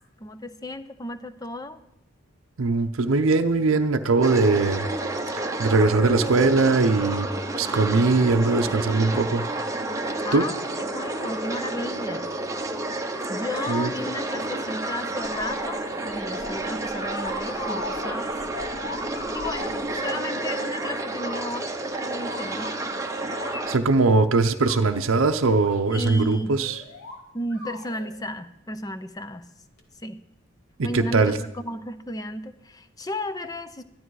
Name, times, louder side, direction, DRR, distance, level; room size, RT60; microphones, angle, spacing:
voice 1, 0.2-1.8 10.2-12.3 13.3-18.3 19.3-22.7 25.9-26.6 27.3-29.5 30.0-30.2 30.8-33.8, left 1 dB, 20° left, 11 dB, 0.6 m, -34 dB
voice 2, 2.6-4.9 5.6-7.3 7.6-9.5 10.3-10.4 13.7-13.9 23.7-26.8 30.8-31.4, right 3 dB, 75° right, 7 dB, 0.7 m, -21 dB
sound 1, 4.2-23.8, right 2 dB, 15° right, 0.8 m, -30 dB
sound 2, 15.2-19.7 20.5-24.0 24.4-25.8 26.6-27.2 27.5-28.1 29.8-29.9, left 2 dB, 75° left, 2.5 m, -39 dB
14.0 x 12.5 x 4.8 m, 0.89 s
head